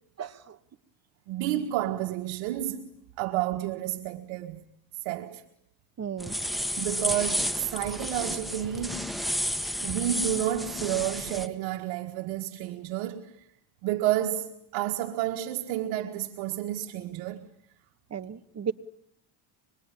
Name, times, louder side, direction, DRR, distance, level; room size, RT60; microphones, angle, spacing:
voice 1, 0.2-0.6 6.0-6.4 18.1-18.7, right 7 dB, 30° right, 1.4 m, -34 dB
voice 2, 1.3-2.9 3.2-4.6 5.1-5.4 6.8-9.1 9.8-13.4 13.8-17.5, right 13 dB, 75° right, 1.8 m, -30 dB
sound 1, 6.2-11.5, equal, ahead, 1.4 m, -31 dB
25.5 x 22.0 x 10.0 m
supercardioid pair, 100°, 50 cm